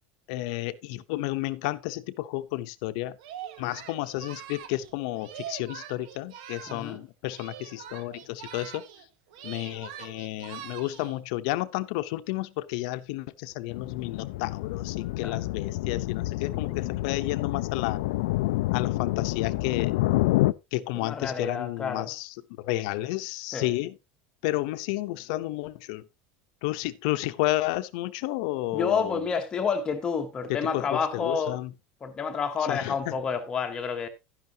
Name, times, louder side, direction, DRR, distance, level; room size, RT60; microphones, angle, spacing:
voice 1, 0.3-3.2 3.6-8.8 9.4-18.0 18.7-19.9 20.7-23.9 24.4-26.0 26.6-29.3 30.5-31.7 32.7-33.2, left 17 dB, 60° left, 0.8 m, -31 dB
Singing, 3.2-7.0 7.3-9.1 9.3-11.2, right 10 dB, 70° right, 1.6 m, -43 dB
voice 2, 6.7-7.0 15.2-15.4 16.5-16.8 20.9-22.1 23.5-23.7 28.7-31.6 32.0-34.1, left 6 dB, 20° left, 1.0 m, -29 dB
sound 1, 13.7-20.5, left 18 dB, 80° left, 0.5 m, -28 dB
12.0 x 10.5 x 2.9 m
cardioid pair, 175°, 4 cm